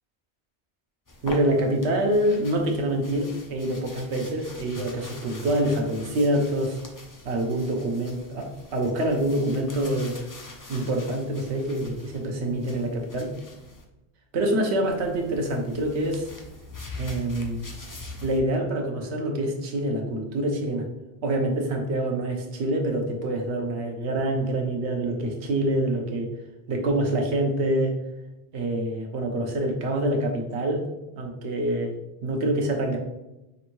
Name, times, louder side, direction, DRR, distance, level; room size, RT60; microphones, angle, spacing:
sound 1, 1.1-13.8 14.8-18.4, left 2 dB, 35° left, 0.3 m, -43 dB
voice 1, 1.2-6.8 7.2-10.2 10.7-13.3 14.3-16.3 17.0-17.7 18.2-20.9 21.2-26.3 26.7-28.0 28.5-30.8 31.1-32.0 32.2-33.0, right 1 dB, 85° right, 2 dB, 1.0 m, -26 dB
5.4 x 2.6 x 3.0 m, 0.96 s
omnidirectional pair, 1.1 m